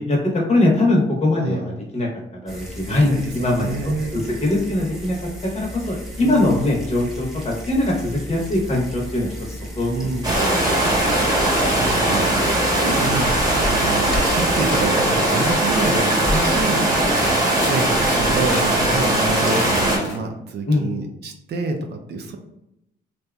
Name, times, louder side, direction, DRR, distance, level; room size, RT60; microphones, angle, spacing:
voice 1, 0.0-2.1 2.3-5.2 5.5-9.9 10.4-10.7 20.7-20.8, left 2 dB, 35° left, -2 dB, 0.9 m, -21 dB
voice 2, 1.4-1.7 2.9-4.2 6.2-6.7 9.9-10.3 11.4-17.2 17.6-22.4, right 3 dB, 55° right, 4 dB, 0.4 m, -27 dB
sound 1, 2.5-14.9, equal, ahead, 0.7 m, -34 dB
sound 2, 10.2-20.0, right 1 dB, 20° right, 1.0 m, -19 dB
sound 3, 14.4-15.2 15.6-20.2, left 2 dB, 70° left, 0.6 m, -35 dB
2.8 x 2.3 x 2.2 m, 0.85 s
cardioid pair, 90°, 20 cm